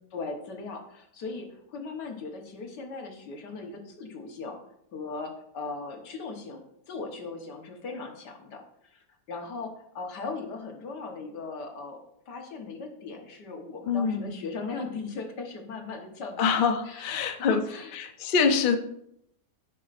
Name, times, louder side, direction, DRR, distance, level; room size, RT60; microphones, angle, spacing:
voice 1, 0.1-4.6 4.9-18.0, left 4 dB, 70° left, 3 dB, 1.8 m, -38 dB
voice 2, 13.9-14.4 16.4-17.6 17.9-18.8, left 5 dB, 85° left, 6 dB, 0.4 m, -25 dB
15.5 x 5.4 x 2.5 m, 0.75 s
omnidirectional pair, 1.9 m